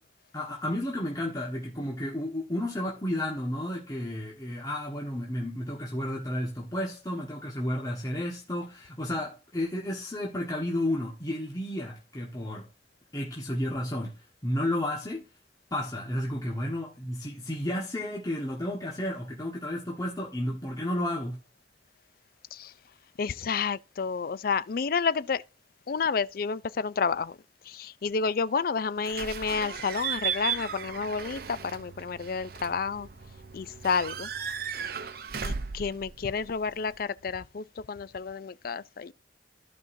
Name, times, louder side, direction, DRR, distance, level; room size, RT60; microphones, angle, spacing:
voice 1, 0.3-12.7 13.1-15.2 15.7-21.4, left 1 dB, 20° left, 1.5 m, -32 dB
voice 2, 23.2-25.4 25.9-27.3 27.8-33.1 33.5-34.3 35.4-39.1, left 5 dB, 55° left, 0.4 m, -30 dB
Slam / Squeak / Alarm, 29.0-37.0, right 7 dB, 60° right, 0.8 m, -36 dB
14.0 x 5.4 x 2.7 m
head